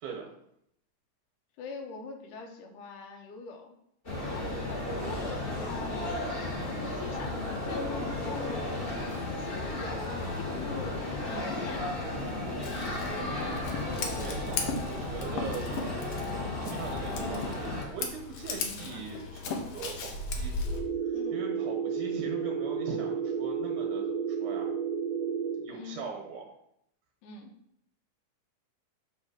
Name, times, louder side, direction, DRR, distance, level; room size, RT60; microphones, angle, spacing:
voice 1, 0.0-0.3 14.2-15.9 16.4-20.5 21.1-24.7 25.6-26.5, right 5 dB, 80° right, -1 dB, 2.6 m, -41 dB
voice 2, 1.6-3.8 4.2-10.0 10.4-12.0 14.7-14.8 21.1-21.4 25.7-26.0 27.2-27.5, left 4 dB, 85° left, 3 dB, 2.5 m, -43 dB
sound 1, 4.0-17.8, left 2 dB, 25° left, 1.4 m, -34 dB
Scissors, 12.6-20.8, left 3 dB, 70° left, 1.4 m, -37 dB
sound 2, 20.6-25.6, right 6 dB, 60° right, 0.4 m, -32 dB
7.6 x 3.3 x 6.3 m, 0.73 s
omnidirectional pair, 3.6 m